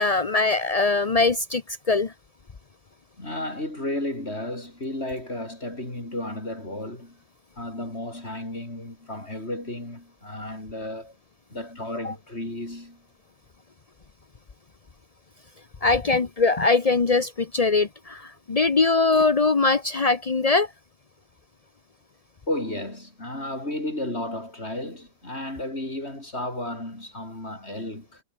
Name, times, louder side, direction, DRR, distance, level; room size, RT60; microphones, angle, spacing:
voice 1, 0.0-2.1 12.0-12.1 15.8-20.7, left 3 dB, 50° left, 0.4 m, -22 dB
voice 2, 3.2-7.2 7.6-11.2 11.5-13.0 22.5-28.2, left 1 dB, 30° left, 6.2 m, -33 dB
omnidirectional pair, 2.2 m